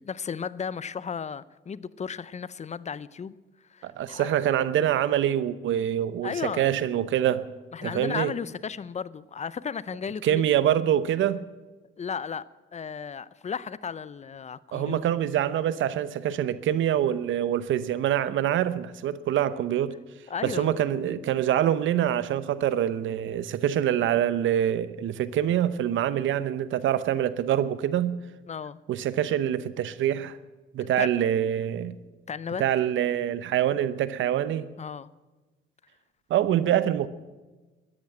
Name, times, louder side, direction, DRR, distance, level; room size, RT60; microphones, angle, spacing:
voice 1, 0.0-3.3 3.7-4.3 6.2-6.7 7.7-10.4 12.0-12.4 12.7-15.0 20.3-20.7 28.5-28.8 31.0-31.3 32.3-32.6 34.8-35.1, left 6 dB, 35° left, 0.6 m, -34 dB
voice 2, 3.8-7.4 7.8-8.3 10.2-11.4 14.7-19.9 20.4-28.2 28.9-30.4 30.7-32.0 32.6-34.7 36.3-37.1, right 11 dB, 75° right, 0.9 m, -25 dB
13.5 x 11.0 x 8.8 m
cardioid pair, 90°, 20 cm